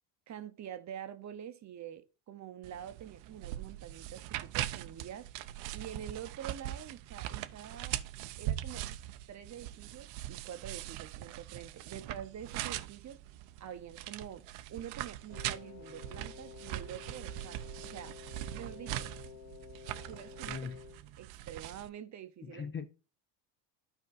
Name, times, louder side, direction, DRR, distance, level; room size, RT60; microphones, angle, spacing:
voice 1, 0.3-5.3 5.7-8.0 8.4-8.9 9.3-13.2 13.6-14.4 14.7-18.2 18.5-19.1 20.1-20.7 21.2-22.7, right 10 dB, 35° right, 0.7 m, -46 dB
sound 1, 2.6-21.9, right 14 dB, 75° right, 0.6 m, -41 dB
Wind instrument woodwind instrument, 15.3-21.0, left 9 dB, 65° left, 1.4 m, -51 dB
voice 2, 20.5-20.8 22.4-22.9, left 6 dB, 25° left, 0.5 m, -40 dB
12.0 x 4.5 x 2.5 m
supercardioid pair, 105°, 48 cm